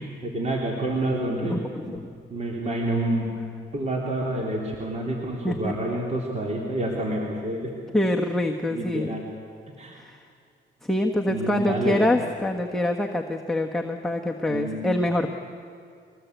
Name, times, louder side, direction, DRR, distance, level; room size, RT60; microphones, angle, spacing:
voice 1, 0.0-1.6 1.9-2.0 2.3-3.3 3.7-7.7 8.7-9.2 9.8-10.0 11.3-12.1 14.5-14.8, right 1 dB, 35° right, -1 dB, 3.5 m, -28 dB
voice 2, 1.4-2.0 5.4-5.7 7.9-9.2 9.9-10.2 10.8-15.3, left 1 dB, ahead, 0 dB, 1.4 m, -25 dB
24.0 x 18.5 x 8.2 m, 2.3 s
cardioid pair, 90°, 20 cm